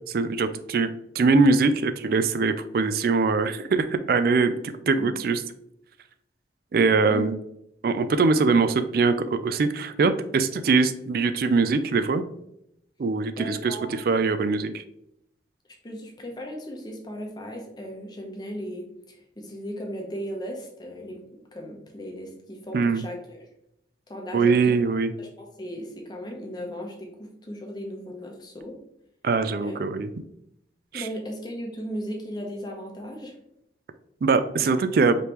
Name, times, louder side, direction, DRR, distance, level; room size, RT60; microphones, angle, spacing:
voice 1, 0.1-4.5 4.9-5.4 6.7-7.3 7.8-12.2 13.0-14.8 22.7-23.0 24.3-25.1 29.2-30.1 30.9-31.1 34.2-35.2, right 4 dB, 50° right, 11 dB, 0.3 m, -22 dB
voice 2, 13.4-14.0 15.8-23.5 24.1-24.8 25.2-28.8 29.6-29.8 30.9-33.3, equal, 25° left, 1 dB, 0.8 m, -37 dB
5.1 x 3.2 x 2.9 m, 0.77 s
head